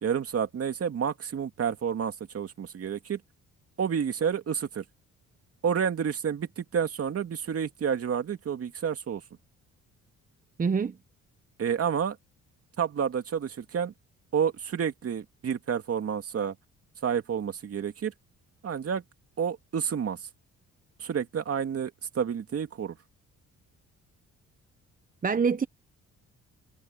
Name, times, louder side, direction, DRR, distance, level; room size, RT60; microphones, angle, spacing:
voice 1, 0.0-3.2 3.8-4.8 5.6-9.2 11.6-12.2 12.8-13.9 14.3-16.5 17.0-18.1 18.6-19.0 19.4-20.2 21.0-23.0, right 7 dB, 50° right, 2.5 m, -29 dB
voice 2, 10.6-10.9 25.2-25.7, right 5 dB, 30° right, 0.8 m, -25 dB
cardioid pair, 90°, 30 cm